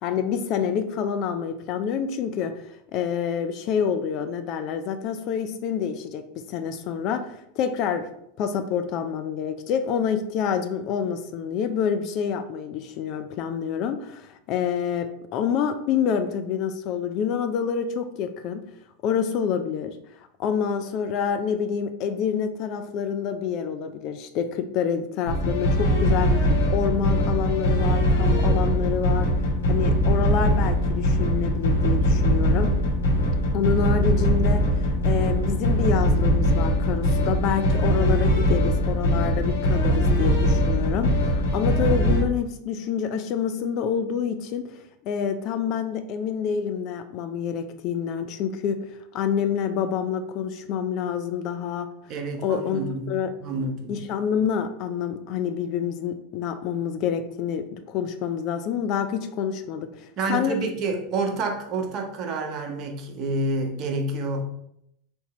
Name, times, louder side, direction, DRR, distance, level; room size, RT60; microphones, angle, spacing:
voice 1, 0.0-8.1 8.4-18.6 19.0-19.9 20.4-29.3 29.7-32.7 33.5-34.6 35.0-48.8 49.1-51.9 52.4-52.8 53.1-53.3 53.9-60.6, left 7 dB, 50° left, 8 dB, 0.4 m, -27 dB
sound 1, 25.3-42.2, equal, 80° left, 1.2 m, -21 dB
voice 2, 52.1-54.0 60.2-64.4, right 2 dB, 45° right, 3 dB, 0.8 m, -28 dB
3.6 x 2.9 x 4.1 m, 0.75 s
hypercardioid pair, 85°, 0 cm